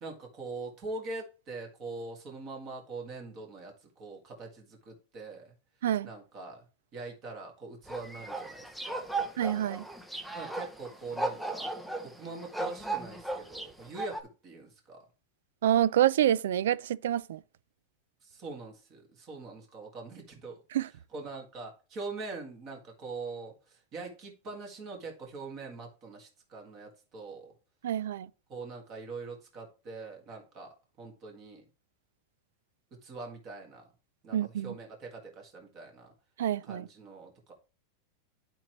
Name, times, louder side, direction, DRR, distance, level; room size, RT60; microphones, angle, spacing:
voice 1, 0.0-5.5 6.0-6.7 6.9-9.2 10.3-11.7 12.0-15.0 18.2-20.6 21.1-27.5 28.5-31.6 32.9-33.9 34.2-36.1 36.6-37.5, right 3 dB, 25° right, 1.8 m, -43 dB
sound 1, 7.9-14.2, right 2 dB, ahead, 0.6 m, -36 dB
voice 2, 9.4-9.9 15.6-17.4 20.7-20.9 27.8-28.3 34.3-34.7 36.4-36.9, right 11 dB, 80° right, 0.4 m, -27 dB
11.5 x 4.5 x 3.1 m
supercardioid pair, 175°, 0 cm